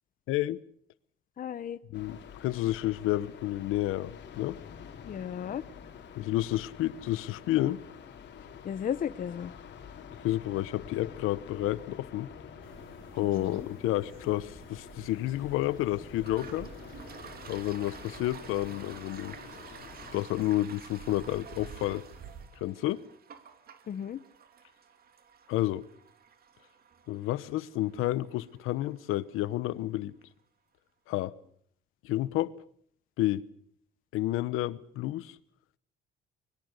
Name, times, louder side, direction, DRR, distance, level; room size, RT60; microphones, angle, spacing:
voice 1, 0.3-0.6 1.9-4.6 6.2-7.8 10.2-12.3 13.1-16.7 17.5-19.4 20.1-22.0 22.6-23.0 25.5-25.8 27.1-30.1 31.1-31.3 32.0-32.5 33.2-33.5 34.1-35.4, left 15 dB, 85° left, 1.1 m, -30 dB
voice 2, 1.4-1.8 5.1-5.6 8.6-9.5 13.2-13.7 23.9-24.2, left 8 dB, 40° left, 0.9 m, -35 dB
sound 1, 1.9-20.3, left 7 dB, 55° left, 4.0 m, -48 dB
sound 2, 12.6-22.5, right 6 dB, 70° right, 3.7 m, -52 dB
Toilet flush, 16.2-29.5, right 7 dB, 45° right, 2.5 m, -51 dB
24.5 x 22.0 x 6.6 m
cardioid pair, 115°, 21 cm